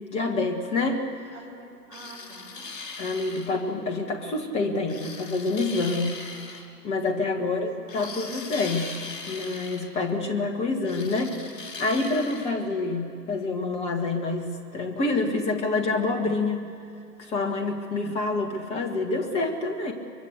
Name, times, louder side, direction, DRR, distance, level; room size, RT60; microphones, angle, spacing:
voice 1, 0.1-1.1 3.0-8.9 9.3-16.7 17.2-19.9, left 3 dB, 10° left, 3 dB, 1.7 m, -27 dB
voice 2, 1.3-2.7 7.3-8.5, right 2 dB, 5° right, -4 dB, 5.8 m, -47 dB
sound 1, 1.9-3.6 4.9-6.7 7.9-9.9 10.8-12.5, left 3 dB, 70° left, 4.9 m, -39 dB
23.5 x 23.0 x 8.0 m, 2.3 s
figure-of-eight pair, 140°, 49 cm